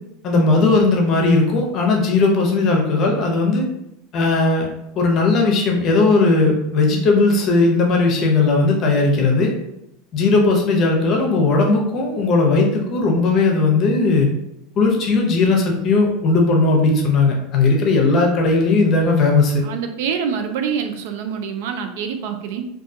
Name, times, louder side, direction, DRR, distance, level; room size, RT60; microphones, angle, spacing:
voice 1, 0.2-3.7 4.1-4.7 4.9-9.5 10.1-14.3 14.8-19.6, left 3 dB, 40° left, 0 dB, 0.7 m, -17 dB
voice 2, 19.6-22.7, right 7 dB, 70° right, 6 dB, 0.3 m, -26 dB
2.3 x 2.2 x 2.6 m, 0.83 s
supercardioid pair, 115°, 0 cm